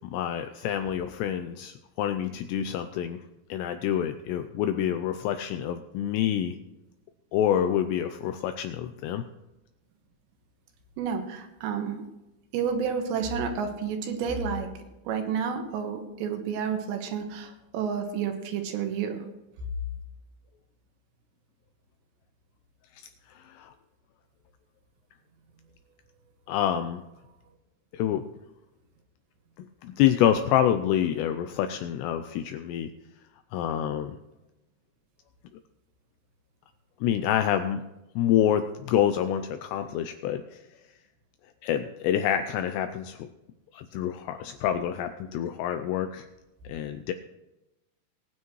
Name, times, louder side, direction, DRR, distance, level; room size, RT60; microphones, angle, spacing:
voice 1, 0.1-3.2 3.5-6.6 7.3-9.2 23.0-23.7 26.5-27.0 27.9-28.2 29.8-32.9 33.5-34.2 37.0-37.8 38.2-40.6 41.6-43.3 43.7-46.3 46.7-47.1, left 10 dB, 90° left, 8 dB, 2.4 m, -27 dB
voice 2, 11.0-12.0 12.5-14.7 15.0-19.3, right 6 dB, 70° right, 5 dB, 3.4 m, -30 dB
20.5 x 9.3 x 3.1 m, 0.97 s
omnidirectional pair, 5.6 m